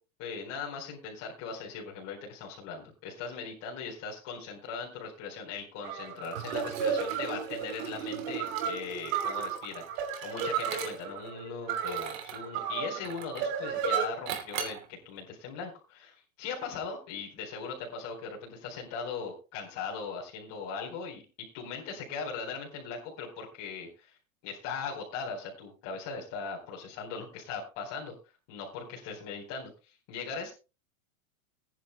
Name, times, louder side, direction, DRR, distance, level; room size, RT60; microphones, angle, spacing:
voice 1, 0.2-21.2 21.5-24.2 24.4-28.1 28.5-30.5, left 5 dB, 40° left, -3 dB, 4.3 m, -39 dB
sound 1, 5.8-14.1, right 7 dB, 50° right, 3.4 m, -33 dB
Liquid, 6.2-11.3 11.7-12.5 13.0-13.6 14.3-14.9, right 9 dB, 70° right, 2.9 m, -40 dB
22.0 x 10.0 x 2.2 m, 0.31 s
supercardioid pair, 145°, 41 cm